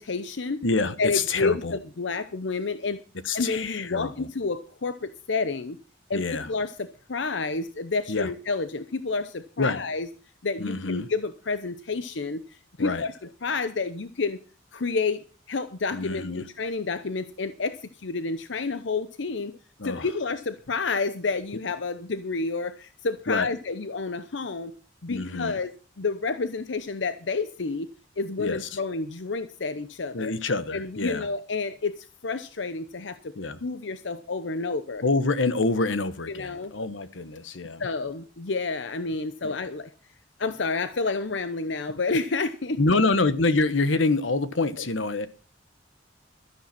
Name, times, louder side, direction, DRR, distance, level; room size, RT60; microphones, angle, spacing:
voice 1, 0.0-0.6 1.0-3.0 3.3-5.8 6.1-10.1 10.4-13.1 13.4-14.4 14.7-19.5 19.8-24.7 25.0-25.7 26.0-27.9 28.2-30.3 30.7-33.3 33.6-35.0 36.3-36.7 37.8-39.9 40.4-43.0 44.8-44.9, left 4 dB, 70° left, 0.8 m, -30 dB
voice 2, 0.6-1.8 3.2-4.3 6.1-6.5 8.1-8.3 9.6-9.8 10.6-11.1 12.8-13.0 15.9-16.5 19.8-20.1 23.3-23.5 25.1-25.6 28.4-28.8 30.1-31.3 33.3-33.6 35.0-37.8 39.4-39.5 42.8-45.3, left 3 dB, 85° left, 1.2 m, -26 dB
12.5 x 10.5 x 5.8 m
head